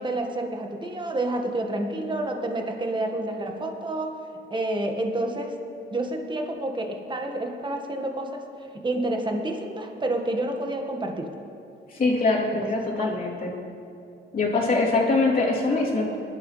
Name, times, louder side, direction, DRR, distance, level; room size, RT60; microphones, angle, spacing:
voice 1, 0.0-4.2 4.5-5.5 5.9-8.4 8.7-11.3 12.6-13.2, right 1 dB, 25° right, 3 dB, 1.6 m, -29 dB
voice 2, 11.9-13.5 14.3-16.2, left 3 dB, 45° left, -4 dB, 3.2 m, -23 dB
20.5 x 11.5 x 3.3 m, 2.7 s
cardioid pair, 90°, 20 cm